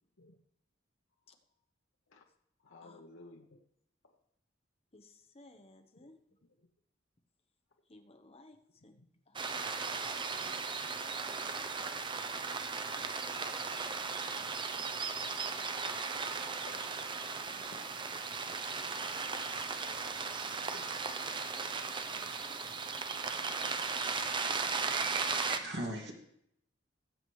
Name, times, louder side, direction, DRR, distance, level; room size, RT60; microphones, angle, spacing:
voice 1, 2.6-3.6 4.0-4.1 6.0-6.1 9.0-9.1 13.6-14.1 16.6-17.2 19.0-19.1 20.2-20.8 21.2-21.4 22.4-22.8 24.7-24.8, left 2 dB, 80° left, 1 dB, 1.0 m, -57 dB
voice 2, 4.9-6.2 7.9-9.0 9.3-9.6 10.0-10.1 10.4-11.8 12.9-13.7 17.4-17.9 18.8-19.3 20.0-20.9 21.8-22.5 23.6-24.7, left 2 dB, 30° left, 5 dB, 1.0 m, -61 dB
sound 1, 9.4-25.6, right 4 dB, 25° right, 0.6 m, -36 dB
voice 3, 24.8-26.1, right 2 dB, 60° right, 0 dB, 2.2 m, -39 dB
19.0 x 7.5 x 3.2 m, 0.74 s
head